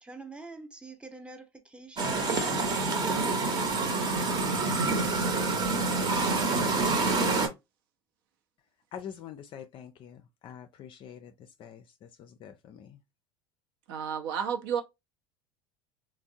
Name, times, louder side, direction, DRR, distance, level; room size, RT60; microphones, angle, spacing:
voice 1, 0.0-2.3 2.9-4.6, right 1 dB, 10° right, 0.7 m, -46 dB
sound 1, 2.0-7.5, right 3 dB, 35° right, 0.9 m, -27 dB
voice 2, 8.9-11.3 11.6-11.8 12.2-13.0, left 8 dB, 40° left, 0.4 m, -45 dB
voice 3, 13.9-14.8, right 7 dB, 65° right, 0.7 m, -31 dB
3.3 x 2.0 x 2.5 m
hypercardioid pair, 80°, 13 cm